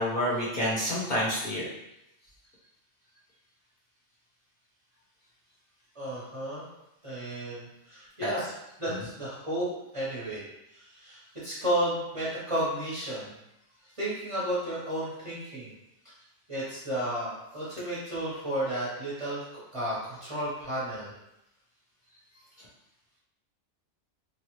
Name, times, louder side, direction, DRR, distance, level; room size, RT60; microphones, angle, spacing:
voice 1, 0.0-1.7 8.2-8.3, equal, 50° left, -6 dB, 0.9 m, -28 dB
voice 2, 5.9-6.6 7.0-10.4 10.7-13.3 14.0-15.7 16.5-21.1, right 1 dB, 30° right, -9 dB, 0.9 m, -33 dB
3.1 x 2.3 x 2.9 m, 0.87 s
omnidirectional pair, 1.2 m